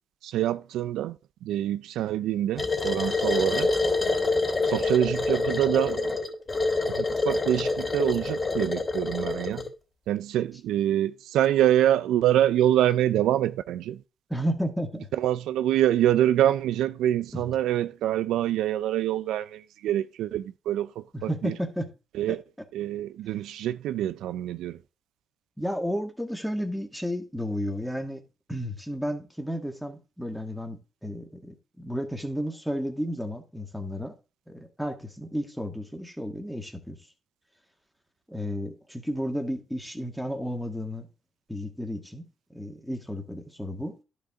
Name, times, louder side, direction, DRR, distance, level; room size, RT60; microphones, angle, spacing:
voice 1, 0.2-3.7 4.6-6.1 6.9-9.7 10.1-14.0 15.2-21.5 22.1-22.4 22.7-24.8, right 12 dB, 85° right, 0.3 m, -25 dB
sound 1, 2.6-9.7, left 3 dB, 25° left, 2.8 m, -27 dB
voice 2, 14.3-15.1 17.3-17.4 21.1-21.9 22.3-22.4 25.6-28.2 28.5-34.1 34.5-37.0 38.3-41.1 41.5-42.2 42.5-44.0, equal, ahead, 1.8 m, -32 dB
11.5 x 5.2 x 3.7 m
cardioid pair, 90°, 0 cm